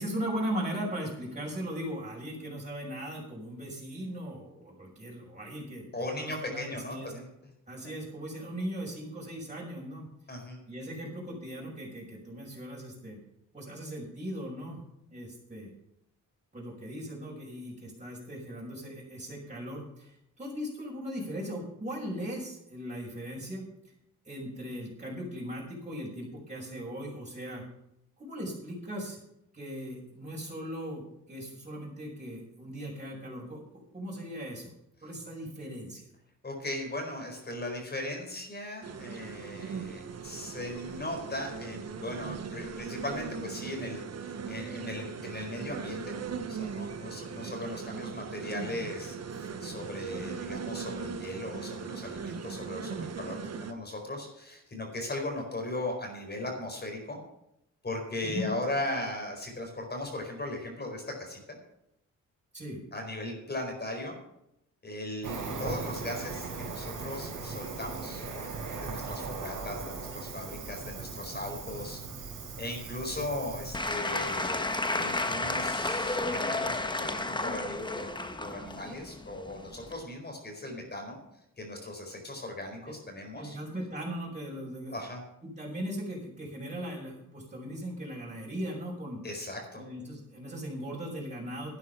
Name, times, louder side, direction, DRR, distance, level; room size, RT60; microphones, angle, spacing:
voice 1, 0.0-5.9 6.2-7.1 7.7-10.1 10.7-13.2 13.5-14.8 15.1-15.7 16.5-23.7 24.2-27.6 28.2-29.2 29.5-34.7 35.0-36.1 58.2-58.5 62.5-62.8 82.9-83.0 83.4-85.0 85.4-89.2 89.8-91.8, equal, 20° right, -5 dB, 5.9 m, -38 dB
voice 2, 5.9-7.3 7.8-7.9 10.3-10.6 35.3-35.4 36.4-46.1 46.4-57.2 57.8-61.6 62.9-64.2 64.8-72.0 72.6-74.6 74.9-78.1 78.4-81.2 81.6-83.6 84.9-85.2 89.2-89.8, left 1 dB, 30° left, 2 dB, 4.5 m, -38 dB
sound 1, 38.8-53.7, right 6 dB, 50° right, 1.2 m, -39 dB
Cricket, 65.2-73.7, right 4 dB, 75° right, 4.0 m, -38 dB
Applause / Crowd, 73.7-80.0, left 2 dB, 15° left, 1.2 m, -32 dB
11.5 x 9.8 x 5.8 m, 0.81 s
cardioid pair, 85°, 33 cm